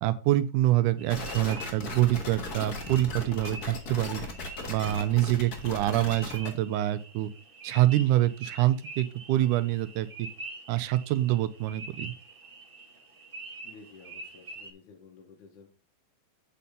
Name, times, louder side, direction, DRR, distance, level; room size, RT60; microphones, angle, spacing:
voice 1, 0.0-4.2 4.7-7.3 7.6-10.3 10.7-12.1, right 14 dB, 85° right, 13 dB, 2.1 m, -26 dB
sound 1, 1.0-14.7, right 2 dB, 60° right, 0.5 m, -46 dB
sound 2, 1.1-6.5, left 3 dB, 45° left, 1.3 m, -37 dB
voice 2, 13.6-15.7, left 5 dB, 75° left, 2 dB, 2.6 m, -52 dB
8.4 x 4.3 x 5.3 m, 0.34 s
omnidirectional pair, 3.6 m